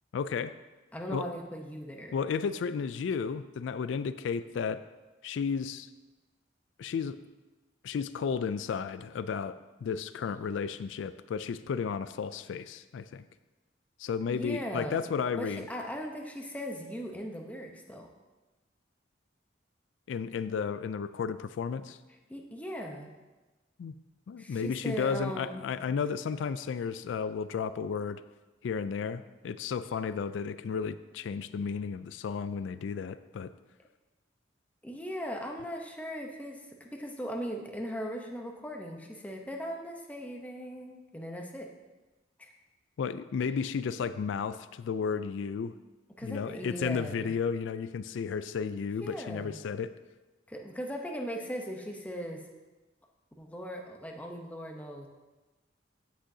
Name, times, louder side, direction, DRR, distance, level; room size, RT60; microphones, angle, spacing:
voice 1, 0.1-0.5 1.1-1.3 2.1-4.8 5.2-5.9 6.8-7.2 7.8-9.5 9.8-13.2 14.0-15.6 20.1-22.0 23.8-23.9 24.3-28.2 28.6-33.5 43.0-45.7 46.2-49.9, left 6 dB, 80° left, 13 dB, 0.3 m, -33 dB
voice 2, 0.9-2.2 14.3-18.1 22.3-23.1 24.4-25.6 34.8-41.7 42.4-42.5 43.4-43.5 46.2-47.3 49.0-49.6 50.5-52.5 53.4-55.1, equal, 10° left, 2 dB, 0.8 m, -39 dB
16.0 x 6.4 x 2.7 m, 1.2 s
head